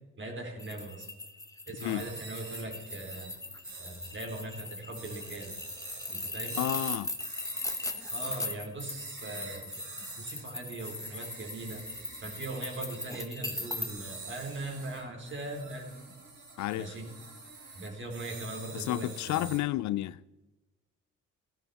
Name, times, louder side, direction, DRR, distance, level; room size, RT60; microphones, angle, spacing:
voice 1, 0.2-1.1 1.7-3.3 3.8-5.5 6.1-6.6 8.1-11.8 12.2-15.9 16.8-17.1 17.7-19.5, right 2 dB, 40° right, 3.8 m, -40 dB
sound 1, 0.6-13.9, left 2 dB, 10° left, 1.2 m, -39 dB
sound 2, 1.7-4.5 5.0-8.4 8.8-10.4 10.8-19.6, right 3 dB, 70° right, 5.7 m, -47 dB
voice 2, 6.6-7.1 16.6-17.0 18.7-20.2, left 15 dB, 70° left, 0.4 m, -31 dB
16.0 x 11.5 x 4.2 m
cardioid pair, 90°, 30 cm